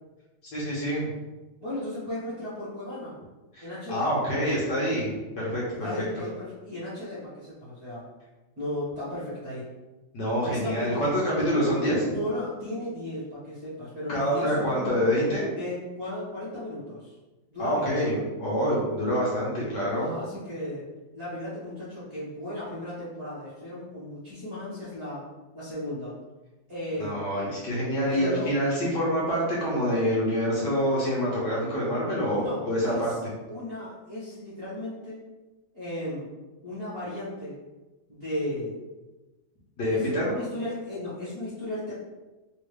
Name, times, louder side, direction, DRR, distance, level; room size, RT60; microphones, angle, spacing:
voice 1, 0.5-1.1 3.5-5.9 10.1-12.0 14.1-15.6 17.6-18.1 18.4-20.1 26.9-33.1 39.8-40.2, equal, 65° left, -6 dB, 1.6 m, -26 dB
voice 2, 1.6-3.1 3.6-4.1 5.8-8.0 8.6-9.7 10.4-11.2 12.1-15.0 15.6-17.2 17.5-18.2 19.9-20.8 21.1-25.3 25.5-26.2 26.7-27.3 28.1-28.5 32.3-33.2 33.5-35.2 35.7-36.3 36.6-37.5 38.1-38.8 39.8-41.9, left 1 dB, 35° right, -10 dB, 1.3 m, -35 dB
3.6 x 2.7 x 3.3 m, 1.1 s
omnidirectional pair, 2.2 m